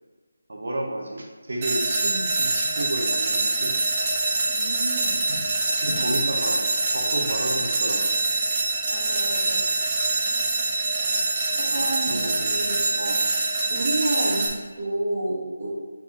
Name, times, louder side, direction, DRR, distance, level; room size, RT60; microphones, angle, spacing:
voice 1, 0.5-3.7 5.3-5.4 5.8-8.1 11.7-13.3, right 1 dB, 65° right, 0 dB, 0.7 m, -32 dB
sound 1, 1.6-14.5, right 2 dB, 20° right, 0.4 m, -24 dB
voice 2, 4.5-5.2 8.9-9.7 11.5-12.9 13.7-15.7, right 1 dB, 40° right, -8 dB, 1.3 m, -30 dB
4.6 x 3.5 x 2.8 m, 1.4 s
figure-of-eight pair, 175°, 0 cm